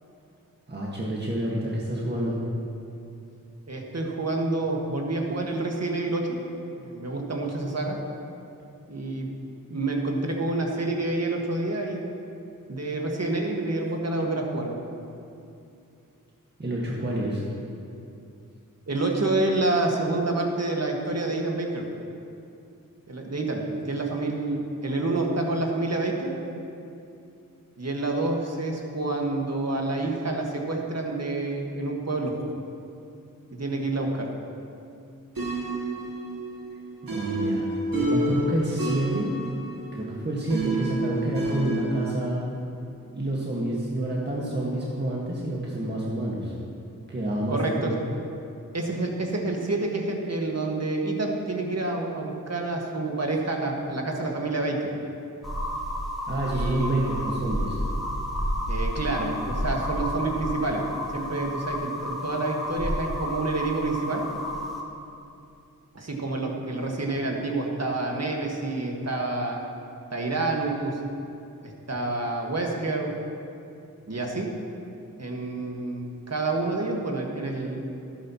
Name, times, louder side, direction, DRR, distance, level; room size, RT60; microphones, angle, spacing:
voice 1, 0.7-2.4 16.6-17.5 37.0-39.3 39.9-42.4 43.1-46.6 47.1-48.0 56.3-57.8, right 1 dB, 30° right, -5 dB, 1.8 m, -28 dB
voice 2, 3.7-6.4 6.7-8.0 8.9-9.3 9.7-12.1 12.7-14.8 18.9-21.9 23.1-26.3 27.8-32.4 33.5-34.3 47.5-48.0 48.7-54.9 56.5-56.9 58.7-64.3 65.9-69.6 70.1-71.0 71.6-73.1 74.1-74.6 75.2-77.8, right 2 dB, 50° right, 0 dB, 1.8 m, -28 dB
sound 1, 35.4-42.2, right 1 dB, 80° right, 2.2 m, -30 dB
sound 2, 55.4-64.8, equal, ahead, 2.6 m, -31 dB
13.5 x 11.5 x 3.1 m, 2.6 s
cardioid pair, 50°, 34 cm